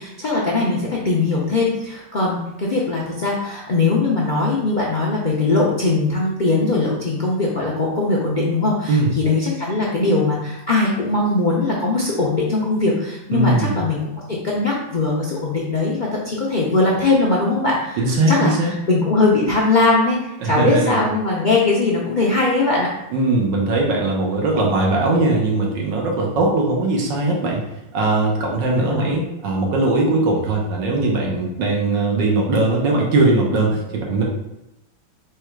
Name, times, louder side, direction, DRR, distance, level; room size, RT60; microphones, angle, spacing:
voice 1, 0.0-14.1 14.4-18.0 18.3-22.9 28.8-29.1, left 3 dB, 85° left, -4 dB, 0.4 m, -20 dB
voice 2, 13.3-13.8 18.0-18.8 20.4-21.0 23.1-27.6 27.9-34.2, right 2 dB, 85° right, -1 dB, 1.5 m, -20 dB
4.7 x 2.3 x 4.5 m, 0.90 s
omnidirectional pair, 1.9 m